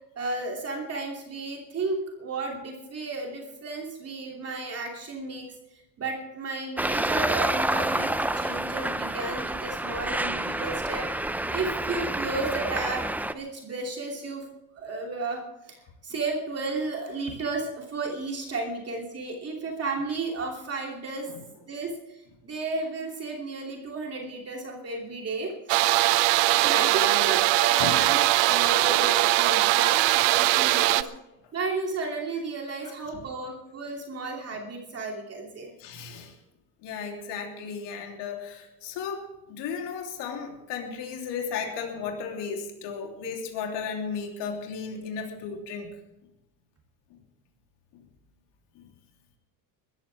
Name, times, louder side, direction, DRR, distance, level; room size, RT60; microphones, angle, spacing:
voice 1, 0.1-5.4 5.7-11.1 11.5-14.5 14.7-21.3 21.7-25.9 26.6-31.1 31.5-35.7, right 3 dB, 35° right, 0 dB, 2.9 m, -33 dB
Traffic noise roadway noise, 6.8-13.3, right 1 dB, 5° right, 0.5 m, -28 dB
sound 1, 25.7-31.0, right 18 dB, 75° right, 0.8 m, -21 dB
voice 2, 26.6-27.3 27.7-28.0 28.4-28.5 30.8-31.1 33.1-33.2 35.8-36.4 36.8-45.9 47.9-48.0 48.7-48.8, left 6 dB, 70° left, 1 dB, 3.3 m, -35 dB
22.0 x 14.0 x 3.5 m, 0.93 s
cardioid pair, 130°, 44 cm